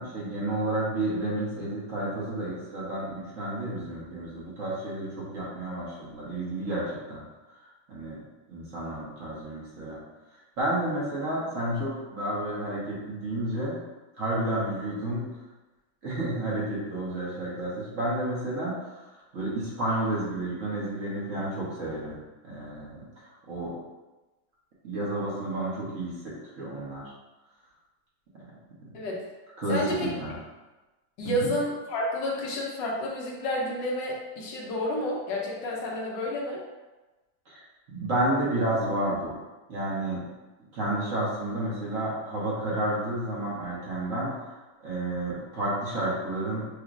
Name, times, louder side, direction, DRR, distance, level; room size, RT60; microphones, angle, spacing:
voice 1, 0.0-7.2 7.9-8.2 8.5-10.0 10.6-13.8 14.2-15.3 16.0-19.1 19.3-22.2 22.4-23.8 24.8-27.1 29.6-30.3 31.4-31.5 37.5-37.6 37.9-39.4 39.7-40.2 40.7-46.6, right 1 dB, 50° right, -7 dB, 1.1 m, -31 dB
voice 2, 29.7-30.1 31.2-36.6, left 1 dB, 70° left, -3 dB, 1.4 m, -30 dB
6.0 x 2.3 x 2.5 m, 1.1 s
omnidirectional pair, 2.1 m